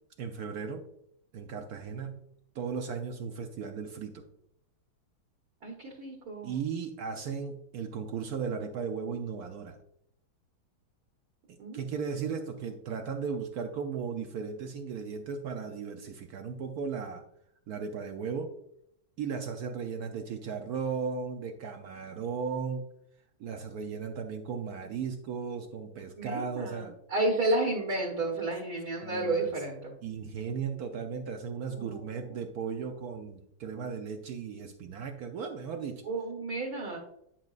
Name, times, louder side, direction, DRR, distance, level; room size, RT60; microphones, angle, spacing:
voice 1, 0.2-0.9 1.3-2.2 2.5-4.3 6.4-9.8 11.5-17.2 17.7-18.5 19.2-22.9 23.4-26.9 29.0-29.5 30.0-36.0, right 6 dB, 75° right, 5 dB, 0.8 m, -36 dB
voice 2, 5.6-6.6 11.6-11.8 26.2-29.9 31.7-32.5 36.1-37.0, right 2 dB, 50° right, -2 dB, 1.6 m, -32 dB
10.0 x 5.9 x 2.4 m, 0.74 s
omnidirectional pair, 2.3 m